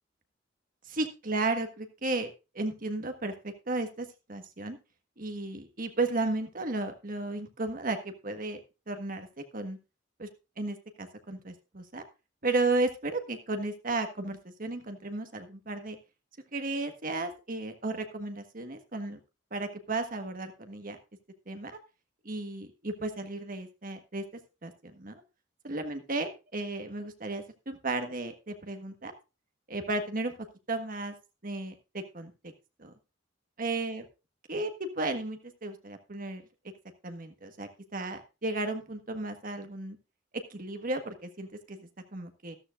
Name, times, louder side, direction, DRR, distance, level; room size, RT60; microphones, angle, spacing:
voice 1, 0.9-4.8 5.2-8.6 8.9-9.8 10.2-10.3 10.6-12.0 12.4-16.0 16.5-19.2 19.5-21.0 21.5-21.7 22.2-24.2 24.6-25.1 25.6-29.1 29.7-30.3 30.7-31.1 31.4-32.5 32.8-32.9 33.6-34.0 34.5-36.4 37.0-40.0 40.5-42.5, right 2 dB, 45° right, 7 dB, 1.5 m, -34 dB
13.5 x 13.0 x 2.5 m, 0.29 s
head